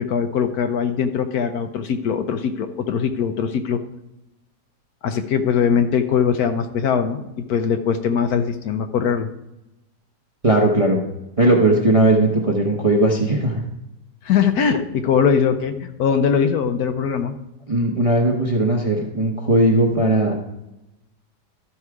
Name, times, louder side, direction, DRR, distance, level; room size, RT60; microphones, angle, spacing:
voice 1, 0.0-3.8 5.0-9.3 14.2-17.3, left 7 dB, 70° left, 8 dB, 1.0 m, -21 dB
voice 2, 10.4-11.0 11.4-13.6 17.7-20.3, right 1 dB, 30° right, 0 dB, 0.7 m, -18 dB
12.5 x 4.7 x 4.8 m, 0.93 s
omnidirectional pair, 1.9 m